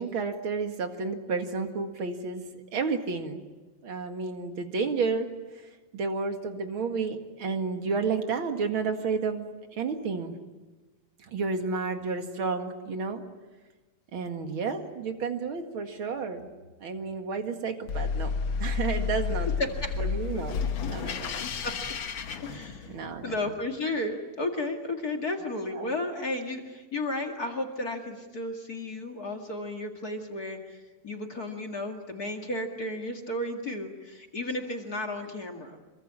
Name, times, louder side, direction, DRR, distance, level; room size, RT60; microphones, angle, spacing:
voice 1, 0.0-3.4 3.8-5.3 5.9-9.4 9.7-10.3 11.2-13.2 14.1-16.5 16.8-18.3 18.6-19.5 20.0-20.5 20.9-21.4 22.9-23.6 25.7-25.9, right 4 dB, 45° right, 5 dB, 2.3 m, -31 dB
sound 1, 17.9-23.2, left 6 dB, 55° left, 1.4 m, -31 dB
voice 2, 21.4-21.7 22.4-22.9 23.2-30.8 31.0-35.8, left 2 dB, 35° left, 3 dB, 2.0 m, -33 dB
26.5 x 23.0 x 8.8 m, 1.2 s
omnidirectional pair, 3.8 m